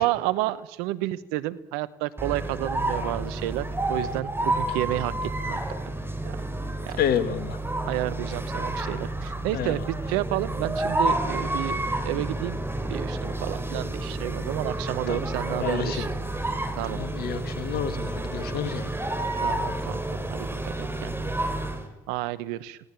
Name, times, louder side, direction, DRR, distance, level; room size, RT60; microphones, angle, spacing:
voice 1, 0.0-5.6 6.2-6.4 6.8-7.0 7.8-12.6 12.9-16.1 16.8-17.0 19.4-20.7 21.0-21.4 22.1-22.8, right 16 dB, 85° right, 17 dB, 1.0 m, -31 dB
sound 1, 2.2-21.9, right 1 dB, 15° right, 5.3 m, -30 dB
voice 2, 7.0-7.6 9.5-9.8 15.1-15.2 15.6-16.0 16.9-18.9, left 8 dB, 70° left, 11 dB, 2.5 m, -29 dB
27.0 x 18.0 x 9.0 m, 0.94 s
hypercardioid pair, 55°, 16 cm